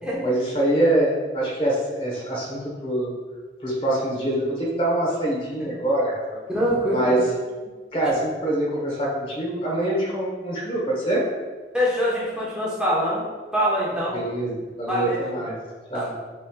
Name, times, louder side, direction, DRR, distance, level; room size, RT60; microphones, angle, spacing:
voice 1, 0.2-3.1 3.6-6.4 6.9-7.3 7.9-11.2 14.1-15.6 15.9-16.1, right 1 dB, 30° left, -4 dB, 1.1 m, -24 dB
voice 2, 6.5-7.1 11.7-13.3 13.5-14.2 14.9-15.2 15.9-16.0, equal, 5° right, -7 dB, 1.1 m, -24 dB
6.8 x 3.1 x 2.3 m, 1.4 s
head